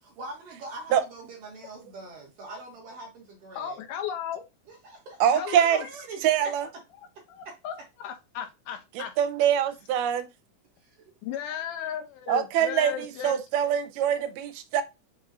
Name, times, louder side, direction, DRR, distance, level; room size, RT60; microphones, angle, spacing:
voice 1, 0.0-3.8 4.7-6.2 7.4-7.6 10.8-11.1 11.4-11.6, right 2 dB, 70° right, 1.6 m, -43 dB
voice 2, 3.6-4.4 5.4-5.9 6.6-6.7 7.0-9.1 11.2-13.4, left 8 dB, 90° left, 2.3 m, -35 dB
voice 3, 5.2-5.8 6.2-6.7 9.0-10.3 12.3-14.8, right 9 dB, 85° right, 2.1 m, -24 dB
5.6 x 3.0 x 2.5 m
omnidirectional pair, 3.8 m